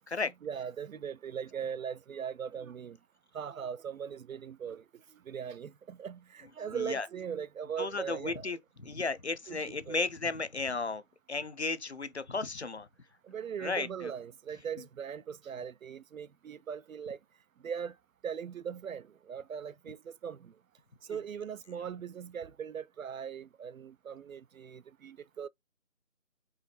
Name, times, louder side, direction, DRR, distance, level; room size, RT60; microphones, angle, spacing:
voice 1, 0.4-3.0 3.3-4.8 5.3-8.5 9.5-10.0 13.3-17.2 17.6-17.9 18.2-20.5 21.1-25.5, right 7 dB, 75° right, 0.5 m, -40 dB
voice 2, 6.7-7.1 7.8-11.0 11.3-12.9 13.6-14.1 21.1-21.2, left 3 dB, 55° left, 0.6 m, -34 dB
4.7 x 3.0 x 3.2 m
figure-of-eight pair, 175°, 41 cm